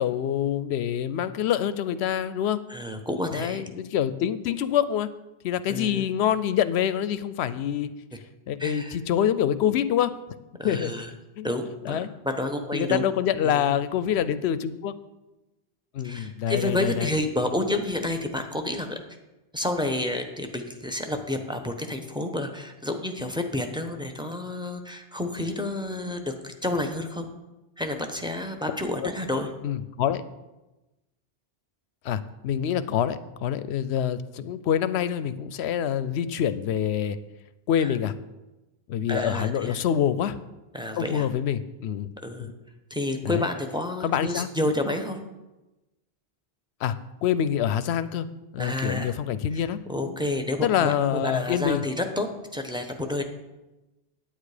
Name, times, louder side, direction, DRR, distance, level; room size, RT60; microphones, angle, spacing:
voice 1, 0.0-2.6 3.3-5.1 5.4-7.9 8.5-10.1 10.6-10.9 11.4-11.5 11.8-12.1 12.7-14.9 15.9-17.1 29.0-29.1 29.6-30.2 32.0-37.2 37.7-38.1 38.9-40.4 41.0-42.1 42.4-42.5 43.2-43.4 44.0-44.5 46.8-47.0 47.2-48.3 48.5-50.1 50.6-51.8, left 9 dB, 85° left, 14 dB, 0.9 m, -26 dB
voice 2, 2.7-3.6 5.7-6.1 8.6-9.0 10.6-11.1 11.4-13.0 13.4-13.7 16.0-19.0 19.5-27.3 27.8-29.5 37.8-37.9 39.1-39.8 40.7-41.3 42.2-42.5 42.9-45.2 48.6-49.2 49.5-50.9 51.2-52.3 52.5-53.2, left 1 dB, 5° right, 5 dB, 0.8 m, -30 dB
9.4 x 8.9 x 5.0 m, 1.0 s
omnidirectional pair, 1.1 m